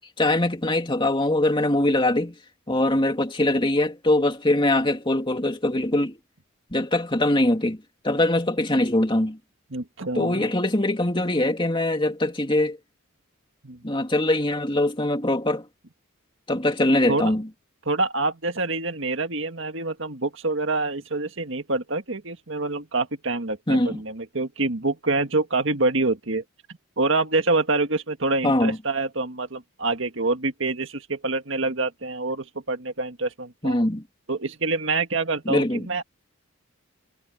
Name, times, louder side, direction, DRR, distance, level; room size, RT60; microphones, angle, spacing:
voice 1, 0.2-2.3 2.7-6.2 6.7-9.4 10.1-12.8 13.8-15.7 16.5-17.5 23.7-24.0 28.4-28.8 33.6-34.0 35.5-35.9, left 1 dB, 25° left, 2.8 m, -22 dB
voice 2, 9.7-10.5 13.6-13.8 17.1-17.3 17.9-26.4 27.0-33.8 34.3-36.0, right 3 dB, 60° right, 1.9 m, -26 dB
head